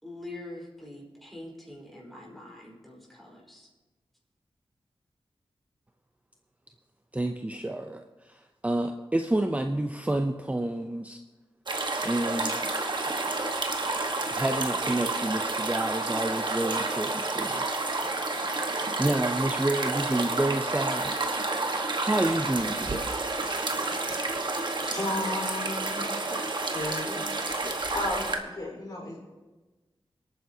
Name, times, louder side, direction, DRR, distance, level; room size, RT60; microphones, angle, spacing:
voice 1, 0.0-3.7, left 1 dB, ahead, -3 dB, 4.8 m, -44 dB
voice 2, 7.1-11.2 12.0-12.6 14.3-17.6 19.0-21.2 22.0-23.1, right 1 dB, 15° right, 5 dB, 0.6 m, -29 dB
sound 1, 11.7-28.4, right 3 dB, 50° right, 1.4 m, -30 dB
voice 3, 24.9-26.2 26.7-27.2 27.9-29.2, left 1 dB, 45° left, -2 dB, 4.5 m, -33 dB
26.5 x 9.2 x 2.8 m, 1.2 s
wide cardioid pair, 65°, 10 cm